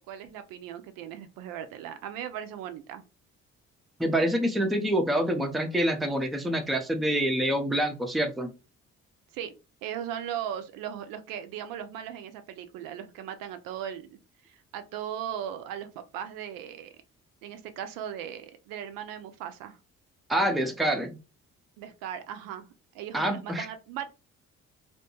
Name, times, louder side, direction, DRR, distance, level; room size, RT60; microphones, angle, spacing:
voice 1, 0.0-3.0 9.3-9.5 9.8-14.2 14.4-16.9 17.4-19.8 21.8-24.1, right 9 dB, 60° right, 9 dB, 0.5 m, -38 dB
voice 2, 4.0-8.5 20.3-21.2 23.1-23.7, right 1 dB, ahead, 4 dB, 0.5 m, -26 dB
2.7 x 2.2 x 2.8 m, 0.30 s
figure-of-eight pair, 45°, 39 cm